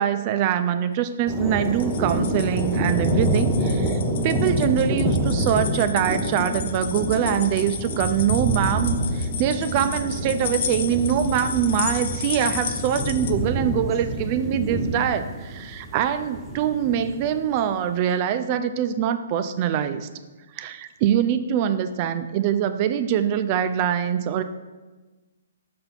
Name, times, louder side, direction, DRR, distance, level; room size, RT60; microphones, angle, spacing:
voice 1, 0.0-20.1 20.6-24.4, right 9 dB, 35° right, 10 dB, 0.4 m, -24 dB
sound 1, 1.3-17.3, right 1 dB, 5° right, 0.9 m, -27 dB
sound 2, 1.7-13.3, left 7 dB, 55° left, 0.5 m, -34 dB
5.6 x 5.6 x 4.0 m, 1.2 s
hypercardioid pair, 150°, 0 cm